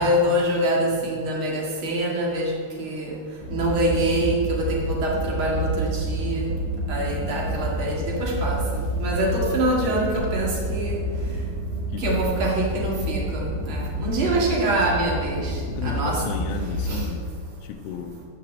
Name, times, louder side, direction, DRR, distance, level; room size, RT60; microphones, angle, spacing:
voice 1, 0.0-3.2 3.5-6.5 6.9-11.0 12.0-16.3 16.8-17.1, right 1 dB, 65° right, -2 dB, 1.2 m, -25 dB
sound 1, 3.4-17.0, right 1 dB, 10° right, 3.1 m, -29 dB
sound 2, 10.2-10.6, left 4 dB, 65° left, 3.5 m, -40 dB
voice 2, 11.9-12.6 14.3-14.4 15.7-17.3 17.6-18.2, left 7 dB, 85° left, 2 dB, 3.2 m, -34 dB
12.5 x 6.7 x 7.4 m, 2.1 s
omnidirectional pair, 5.6 m